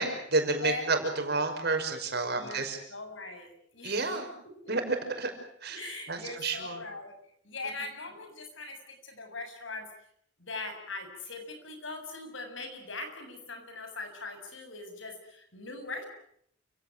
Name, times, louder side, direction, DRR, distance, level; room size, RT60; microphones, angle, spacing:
voice 1, 0.0-2.8 3.8-4.3 4.7-5.3 5.6-5.8 6.1-6.8 7.6-7.7, right 3 dB, 55° right, 5 dB, 5.7 m, -30 dB
voice 2, 2.3-2.6 2.9-4.1 4.6-4.8 5.7-7.1 7.4-8.8 9.0-9.8 10.4-16.1, left 3 dB, 80° left, 5 dB, 7.3 m, -40 dB
29.0 x 17.0 x 9.2 m, 0.68 s
head